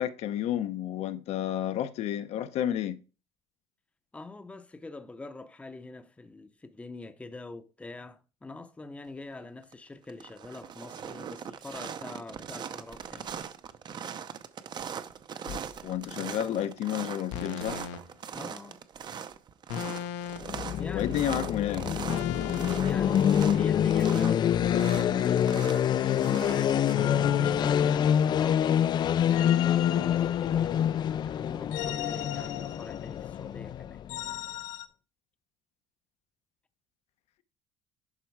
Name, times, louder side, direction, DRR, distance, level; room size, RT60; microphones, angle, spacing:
voice 1, 0.0-3.0 15.8-17.8 20.9-21.8, left 11 dB, 65° left, 0.8 m, -31 dB
voice 2, 4.1-13.3 18.3-18.8 20.8-21.1 22.8-26.9 27.4-34.0, left 3 dB, 10° left, 0.7 m, -44 dB
sound 1, 9.4-9.7 10.0-27.9, right 8 dB, 40° right, 0.7 m, -41 dB
sound 2, 15.5-15.7 17.3-18.0 19.7-20.6 22.1-22.8 24.5-26.0 26.9-28.5 29.3-30.9 31.7-33.2 34.1-34.9, left 10 dB, 85° left, 1.1 m, -37 dB
sound 3, 20.4-34.3, left 9 dB, 40° left, 0.4 m, -26 dB
11.0 x 4.4 x 4.7 m
cardioid pair, 135°, 12 cm